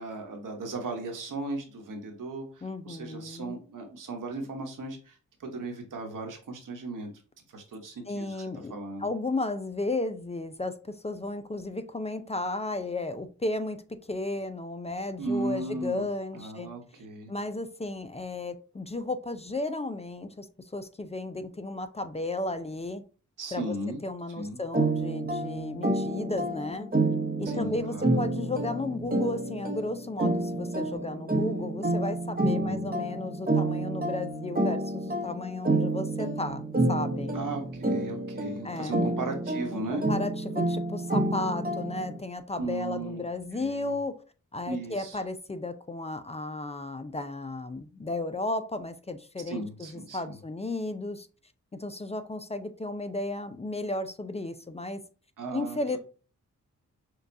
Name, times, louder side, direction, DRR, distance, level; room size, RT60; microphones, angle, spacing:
voice 1, 0.0-7.1 7.5-8.4 8.7-9.1 15.2-16.1 16.3-17.3 23.4-24.0 24.4-24.6 27.4-28.2 32.4-32.8 37.3-40.1 42.6-43.2 43.5-43.9 44.7-45.2 49.5-50.4 55.4-56.0, right 2 dB, 80° right, 1.2 m, -36 dB
voice 2, 2.6-3.6 8.1-16.7 17.3-20.5 20.7-23.0 23.5-23.7 24.0-26.9 27.4-37.4 38.6-39.0 39.7-44.2 44.5-51.3 51.7-55.0 55.5-56.0, left 2 dB, 20° left, 0.4 m, -34 dB
sound 1, 24.7-42.2, right 2 dB, 30° right, 0.9 m, -29 dB
6.4 x 2.3 x 2.6 m
cardioid pair, 70°, 31 cm